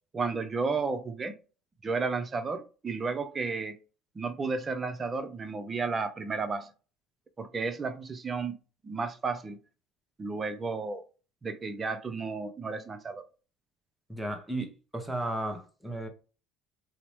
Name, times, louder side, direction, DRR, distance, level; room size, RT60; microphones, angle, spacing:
voice 1, 0.1-1.4 1.8-3.8 4.1-6.7 7.4-8.6 8.8-9.6 10.2-11.0 11.4-13.2, right 4 dB, 30° right, 0.5 m, -32 dB
voice 2, 14.1-16.1, right 1 dB, 5° right, 0.9 m, -34 dB
2.7 x 2.0 x 3.1 m
supercardioid pair, 85°, 0 cm